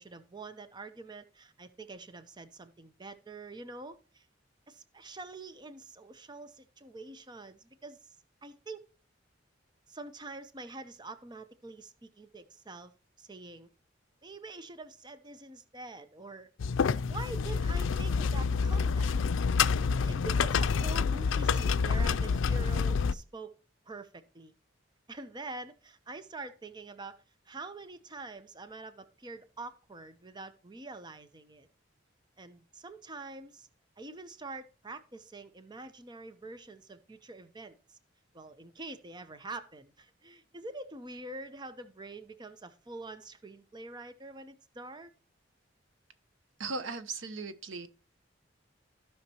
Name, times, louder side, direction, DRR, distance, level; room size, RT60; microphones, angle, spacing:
voice 1, 0.0-4.3 4.7-8.0 8.4-8.8 9.9-12.9 13.2-13.7 14.2-16.5 17.1-19.2 20.0-23.5 23.9-24.5 25.1-31.7 32.4-33.7 34.0-38.0 38.3-45.1, right 3 dB, 25° right, 0.7 m, -45 dB
sound 1, 16.6-23.1, left 5 dB, 90° left, 0.4 m, -28 dB
voice 2, 46.6-47.9, right 4 dB, 85° right, 0.9 m, -37 dB
15.5 x 5.8 x 2.9 m
head